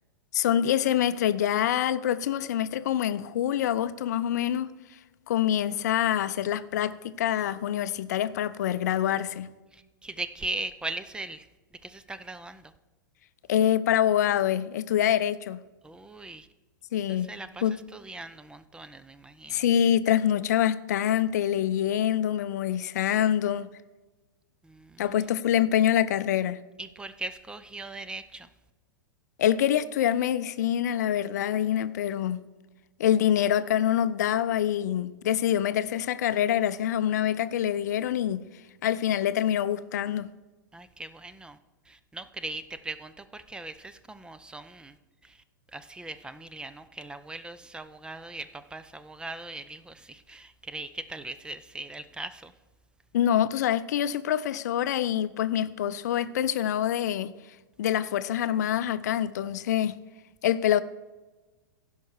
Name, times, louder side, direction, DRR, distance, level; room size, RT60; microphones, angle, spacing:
voice 1, 0.3-4.7 5.3-9.5 13.5-15.6 16.9-17.3 17.6-17.7 19.5-23.7 25.0-26.6 29.4-32.4 33.0-38.4 38.8-40.3 53.1-57.3 57.8-60.0 60.4-60.8, left 10 dB, 55° left, 0.5 m, -25 dB
voice 2, 9.7-11.5 11.8-12.7 15.8-16.5 17.1-19.6 24.6-25.1 26.8-28.5 40.7-41.6 41.9-45.0 45.2-45.4 45.7-52.5, right 2 dB, 10° right, 0.4 m, -39 dB
16.0 x 5.5 x 4.6 m
figure-of-eight pair, 100°, 11 cm